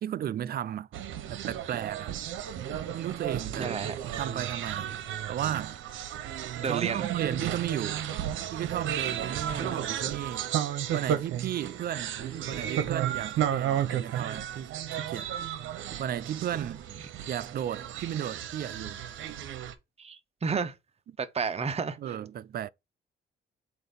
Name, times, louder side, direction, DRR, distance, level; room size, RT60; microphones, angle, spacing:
voice 1, 0.0-0.9 1.3-2.1 2.9-3.7 4.2-4.9 5.3-5.8 6.6-8.1 8.5-10.5 10.9-12.2 12.4-15.3 16.0-16.9 17.3-19.0 22.0-22.7, right 10 dB, 50° right, 0.4 m, -34 dB
sound 1, 0.9-19.7, right 10 dB, 80° right, 0.9 m, -33 dB
voice 2, 3.5-4.0 6.6-7.0 9.6-9.7 20.0-20.7 21.2-22.0, right 5 dB, 30° right, 0.8 m, -31 dB
7.8 x 2.6 x 5.2 m
cardioid pair, 90°, 20 cm